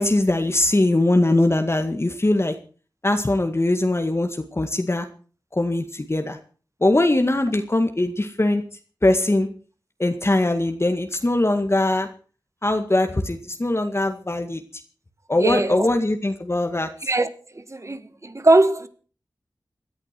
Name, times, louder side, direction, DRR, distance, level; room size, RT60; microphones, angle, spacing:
voice 1, 0.0-2.5 3.0-5.1 5.5-6.4 6.8-8.6 9.0-9.5 10.0-12.1 12.6-14.6 15.3-16.9, left 1 dB, 35° left, 1.9 m, -21 dB
voice 2, 15.4-15.9 17.0-17.3 17.5-18.9, right 2 dB, 40° right, 1.6 m, -20 dB
17.5 x 10.5 x 6.1 m
cardioid pair, 40°, 7 cm